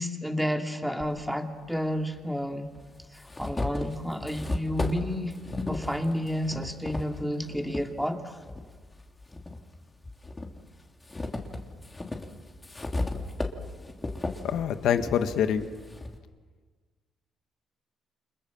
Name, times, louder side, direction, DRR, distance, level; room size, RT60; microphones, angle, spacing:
voice 1, 0.0-2.7 3.1-5.4 5.7-8.4, equal, ahead, 3 dB, 2.7 m, -31 dB
sound 1, 1.0-1.1 2.2-2.3 2.7-7.9 8.4-9.6 10.0-16.2, left 2 dB, 20° left, 3.1 m, -35 dB
voice 2, 14.4-15.7, left 8 dB, 80° left, 8 dB, 1.7 m, -25 dB
30.0 x 26.0 x 7.4 m, 1.5 s
cardioid pair, 90°, 0 cm